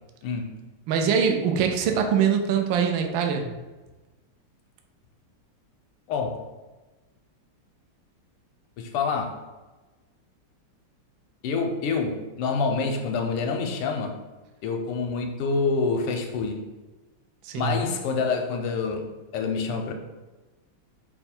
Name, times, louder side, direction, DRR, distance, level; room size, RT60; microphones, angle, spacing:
voice 1, 0.9-3.5 17.4-17.7, right 7 dB, 75° right, 4 dB, 1.2 m, -23 dB
voice 2, 6.1-6.4 8.8-9.4 11.4-14.2 14.6-16.7 17.5-19.1 19.3-19.9, left 4 dB, 85° left, 3 dB, 1.6 m, -27 dB
5.3 x 2.2 x 4.3 m, 1.2 s
omnidirectional pair, 2.4 m